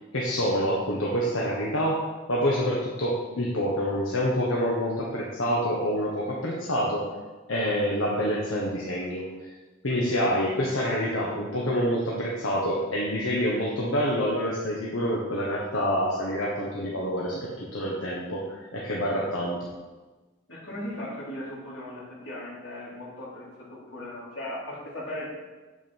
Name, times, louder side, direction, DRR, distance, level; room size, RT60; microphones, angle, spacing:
voice 1, 0.1-2.0 2.3-7.0 7.5-9.3 9.8-19.6, equal, 85° left, -4 dB, 1.4 m, -27 dB
voice 2, 20.5-25.3, left 1 dB, 70° left, -5 dB, 3.3 m, -37 dB
8.5 x 7.3 x 4.8 m, 1.2 s
head